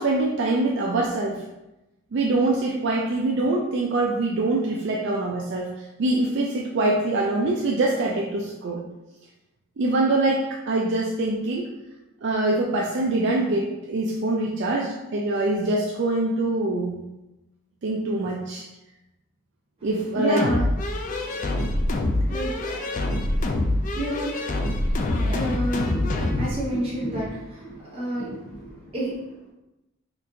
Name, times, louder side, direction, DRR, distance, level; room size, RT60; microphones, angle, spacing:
voice 1, 0.0-1.4 2.1-5.7 6.0-8.8 9.8-11.7 12.2-17.0 17.8-18.7 19.8-20.5, right 2 dB, 55° right, -2 dB, 0.4 m, -24 dB
voice 2, 19.8-29.5, equal, 25° right, -7 dB, 1.2 m, -32 dB
sound 1, 20.4-26.5, left 1 dB, 40° left, 0.3 m, -25 dB
4.3 x 2.5 x 2.7 m, 0.95 s
head